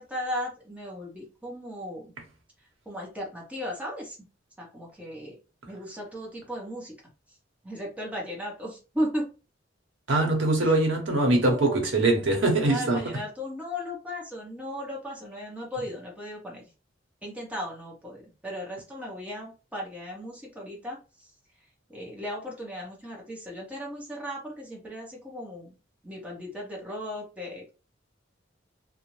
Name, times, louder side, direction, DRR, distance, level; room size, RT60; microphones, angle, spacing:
voice 1, 0.0-2.1 2.8-4.2 4.6-5.4 5.6-6.9 7.6-9.3 10.6-10.8 11.3-16.7 17.2-21.3 21.9-25.8 26.0-27.7, equal, 5° right, 0.9 m, -36 dB
voice 2, 10.1-13.0, right 2 dB, 80° right, 0.9 m, -22 dB
2.5 x 2.0 x 3.0 m
head